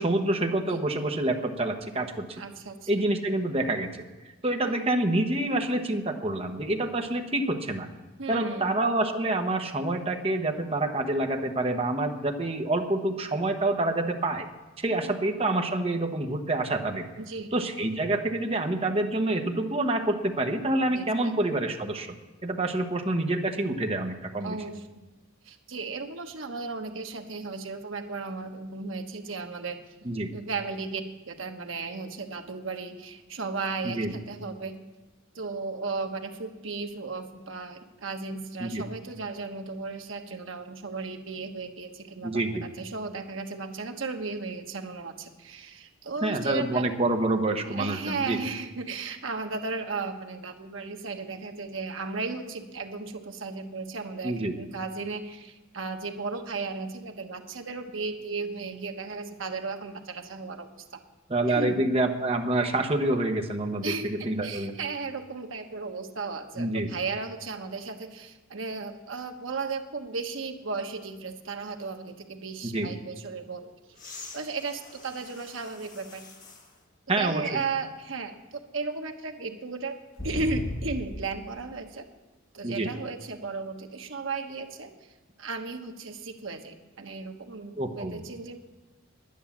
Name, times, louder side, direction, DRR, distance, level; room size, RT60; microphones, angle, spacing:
voice 1, 0.0-2.4 2.9-4.0 4.4-7.9 8.3-14.5 14.8-17.0 17.5-22.1 22.4-24.6 30.0-30.3 33.8-34.1 38.6-38.8 42.2-42.6 46.2-48.4 54.2-54.5 61.3-63.9 64.2-64.7 66.6-66.9 72.6-72.9 77.1-77.5 82.6-82.9 87.8-88.2, right 2 dB, 30° right, 5 dB, 1.0 m, -27 dB
voice 2, 2.4-2.9 4.6-4.8 8.2-8.7 15.0-15.2 17.2-17.5 20.9-21.3 24.4-24.9 25.4-29.9 30.3-34.8 35.3-46.8 47.7-61.0 61.5-61.8 63.8-73.7 74.3-76.3 77.2-78.3 78.7-80.0 80.2-82.1 82.5-85.1 85.4-88.6, right 4 dB, 70° right, 5 dB, 1.2 m, -35 dB
sound 1, 73.9-76.7 77.4-77.5 80.2-81.4 83.2-83.3, left 1 dB, 40° left, 1.7 m, -38 dB
10.5 x 10.0 x 7.3 m, 1.1 s
head